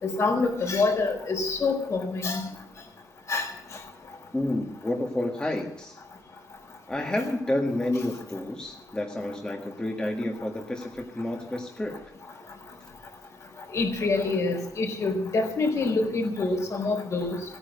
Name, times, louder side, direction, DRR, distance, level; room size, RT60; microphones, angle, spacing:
voice 1, 0.0-2.5 3.3-3.8 13.7-17.4, left 3 dB, 50° left, 3 dB, 4.3 m, -26 dB
voice 2, 4.3-6.0 6.9-12.0, left 1 dB, 15° left, 1 dB, 1.6 m, -30 dB
16.0 x 9.9 x 8.0 m, 0.75 s
cardioid pair, 125°, 6 cm